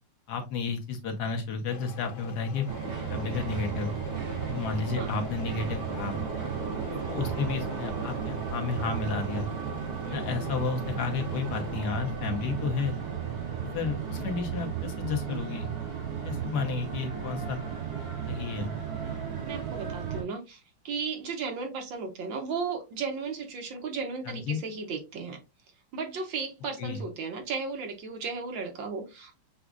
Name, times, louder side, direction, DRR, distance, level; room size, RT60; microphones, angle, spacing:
voice 1, 0.3-2.7 3.1-3.9 4.5-6.2 7.1-9.5 10.1-13.0 13.6-15.7 16.2-17.6 18.3-18.7 24.2-24.6 26.8-27.0, left 5 dB, 60° left, 1.3 m, -32 dB
sound 1, 1.7-11.8, left 7 dB, 75° left, 1.7 m, -45 dB
sound 2, 2.7-20.2, right 7 dB, 50° right, 2.0 m, -34 dB
voice 2, 19.4-25.4 25.9-29.4, right 5 dB, 70° right, 1.6 m, -35 dB
7.0 x 2.4 x 2.4 m
omnidirectional pair, 2.3 m